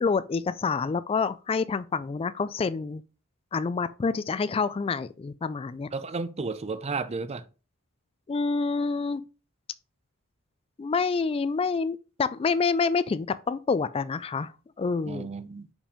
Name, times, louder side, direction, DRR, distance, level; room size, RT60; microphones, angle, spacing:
voice 1, 0.0-3.0 3.5-5.9 8.3-9.2 10.8-14.5 14.8-15.3, left 4 dB, 25° left, 0.3 m, -27 dB
voice 2, 5.9-7.5 15.1-15.7, right 4 dB, 30° right, 0.5 m, -33 dB
5.2 x 5.1 x 5.0 m
head